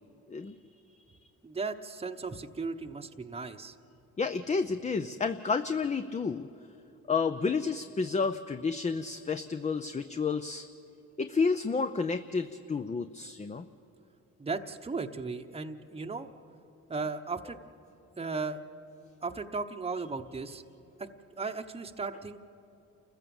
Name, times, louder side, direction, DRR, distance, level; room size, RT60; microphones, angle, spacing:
voice 1, 1.4-3.7 14.4-16.3 16.9-17.6 18.2-18.6 19.2-20.6 21.0-21.1 21.4-22.4, right 4 dB, 20° right, 6 dB, 1.0 m, -36 dB
voice 2, 4.2-6.5 7.1-10.7 11.2-13.7, left 4 dB, 25° left, 9 dB, 0.6 m, -30 dB
29.0 x 15.0 x 7.1 m, 2.9 s
cardioid pair, 90°, 30 cm